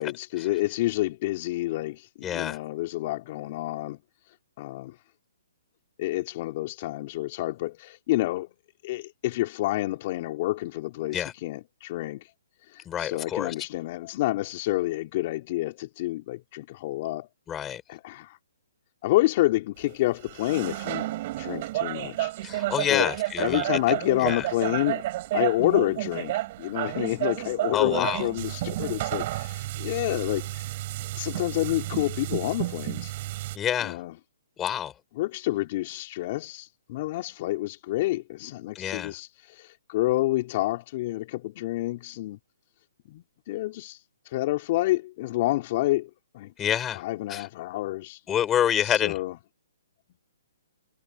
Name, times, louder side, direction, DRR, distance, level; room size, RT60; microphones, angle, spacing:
voice 1, 0.0-4.0 4.6-4.9 6.0-8.5 8.8-12.3 12.7-17.3 17.9-18.4 19.0-21.1 21.4-22.6 22.9-23.1 23.4-25.0 25.3-30.7 31.2-33.1 33.8-34.1 35.2-42.4 43.1-46.5 46.9-48.2 48.8-49.3, left 17 dB, 40° left, 3.4 m, -28 dB
voice 2, 2.2-2.6 11.1-11.3 12.9-13.5 17.5-17.8 22.4-23.8 24.2-24.5 27.7-28.3 33.5-34.0 34.6-34.9 38.7-39.1 46.6-47.0 47.3-47.5 48.3-49.2, left 10 dB, 15° left, 5.5 m, -27 dB
sound 1, 19.9-20.0 20.2-33.6, right 17 dB, 40° right, 6.2 m, -31 dB
hypercardioid pair, 150°, 0 cm